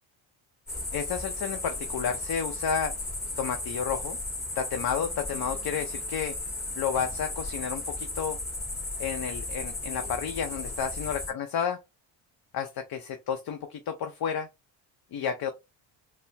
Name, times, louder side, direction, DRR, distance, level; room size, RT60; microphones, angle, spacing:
sound 1, 0.7-11.3, left 2 dB, 20° left, 2.2 m, -35 dB
voice 1, 0.9-2.9 3.4-4.2 4.5-6.3 6.8-8.4 9.0-11.8 12.5-14.5 15.1-15.5, left 7 dB, 50° left, 0.7 m, -31 dB
4.3 x 2.1 x 3.2 m
supercardioid pair, 70°, 50 cm